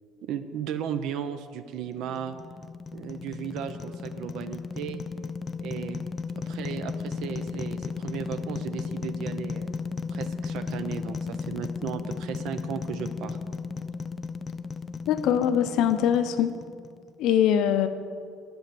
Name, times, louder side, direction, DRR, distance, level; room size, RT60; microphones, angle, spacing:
voice 1, 0.2-2.3 2.9-5.0 5.6-6.1 6.4-9.8 10.1-13.4, right 8 dB, 60° right, 9 dB, 0.6 m, -35 dB
sound 1, 1.9-17.1, left 4 dB, 20° left, 0.4 m, -35 dB
voice 2, 15.1-16.6 17.2-17.9, left 9 dB, 55° left, 10 dB, 0.7 m, -22 dB
10.5 x 9.3 x 6.9 m, 2.2 s
cardioid pair, 170°, 0 cm